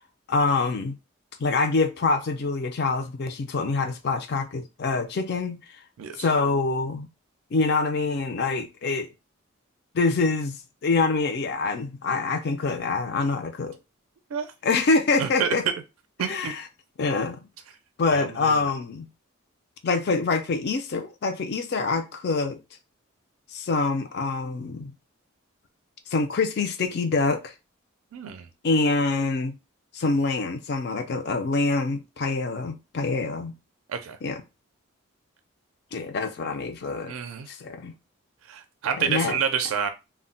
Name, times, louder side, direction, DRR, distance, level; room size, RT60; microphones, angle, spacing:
voice 1, 0.3-1.0 1.4-5.6 6.2-7.1 7.5-9.1 9.9-13.8 14.6-15.6 16.3-16.6 17.0-17.4 18.0-19.1 19.8-22.6 23.5-24.9 26.1-27.5 28.6-29.6 29.9-33.5 34.2-34.4 35.9-37.1 37.5-37.9 39.0-39.4, left 3 dB, 50° left, 0.4 m, -25 dB
voice 2, 15.2-15.7 16.2-16.6 18.1-18.6 28.1-28.5 33.9-34.2 37.1-37.5 38.5-39.9, right 7 dB, 80° right, 0.4 m, -28 dB
2.2 x 2.1 x 3.7 m
head